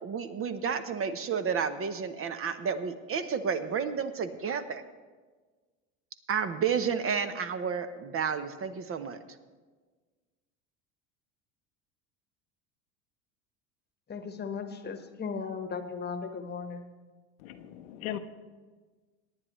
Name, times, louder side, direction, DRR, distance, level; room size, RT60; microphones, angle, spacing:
voice 1, 0.0-4.8 6.3-9.2, right 6 dB, 30° right, 10 dB, 0.8 m, -31 dB
voice 2, 14.1-16.8, left 5 dB, 25° left, 7 dB, 1.2 m, -36 dB
voice 3, 17.4-18.2, left 12 dB, 80° left, 8 dB, 0.9 m, -38 dB
18.0 x 9.7 x 3.1 m, 1.4 s
supercardioid pair, 100°, 42 cm